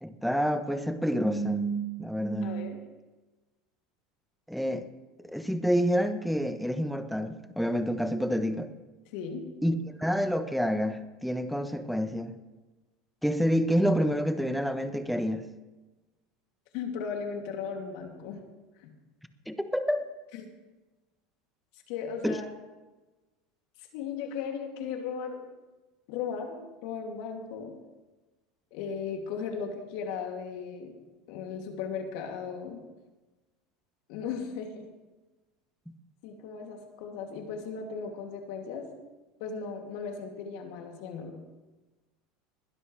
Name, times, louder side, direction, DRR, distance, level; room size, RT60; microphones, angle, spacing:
voice 1, 0.0-2.7 4.5-4.8 5.2-8.7 9.6-12.4 13.2-15.5 19.5-20.1 22.2-22.4, equal, ahead, 9 dB, 1.0 m, -28 dB
voice 2, 2.4-2.8 9.1-9.4 16.7-18.4 21.9-22.5 23.9-25.4 26.1-27.7 28.7-30.9 31.3-32.8 34.1-34.8 36.2-38.9 39.4-41.4, left 6 dB, 65° left, 2 dB, 2.6 m, -36 dB
21.0 x 12.0 x 3.3 m, 1.2 s
supercardioid pair, 115°, 0 cm